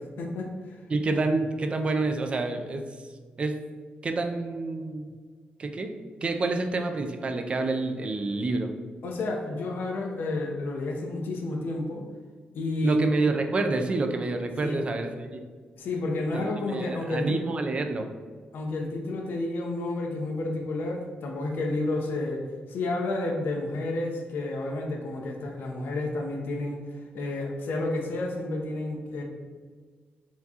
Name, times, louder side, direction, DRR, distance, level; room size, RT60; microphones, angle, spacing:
voice 1, 0.2-0.8 1.1-1.2 9.0-12.1 12.5-13.0 14.6-14.8 15.8-17.4 18.5-29.2, left 2 dB, 85° left, 1 dB, 0.7 m, -31 dB
voice 2, 0.9-2.9 3.4-3.5 4.0-5.1 5.6-5.9 6.2-8.7 12.8-15.4 16.3-18.1, right 3 dB, 35° right, 5 dB, 0.4 m, -28 dB
4.5 x 3.6 x 2.8 m, 1.5 s
wide cardioid pair, 135°, 3 cm